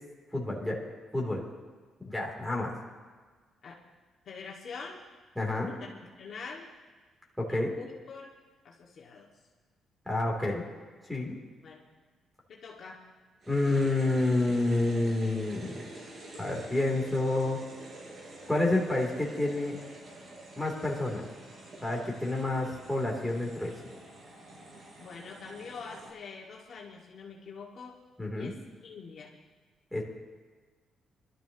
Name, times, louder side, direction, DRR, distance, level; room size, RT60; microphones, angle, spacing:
voice 1, 0.3-0.8 1.1-1.4 2.0-2.7 5.4-5.7 7.4-7.7 10.0-10.6 11.1-11.3 13.5-15.8 16.4-17.6 18.5-19.8 20.5-21.2 21.8-23.7 28.2-28.5 29.9-30.0, left 2 dB, ahead, -2 dB, 3.2 m, -29 dB
voice 2, 4.2-5.0 5.7-6.7 7.5-8.3 8.6-9.3 11.6-11.9 12.5-13.0 25.0-28.0 28.3-29.4, left 5 dB, 55° left, -3 dB, 2.0 m, -45 dB
sound 1, 13.4-26.1, right 2 dB, 50° right, 4.6 m, -48 dB
22.5 x 12.5 x 3.0 m, 1.4 s
cardioid pair, 90°, 0 cm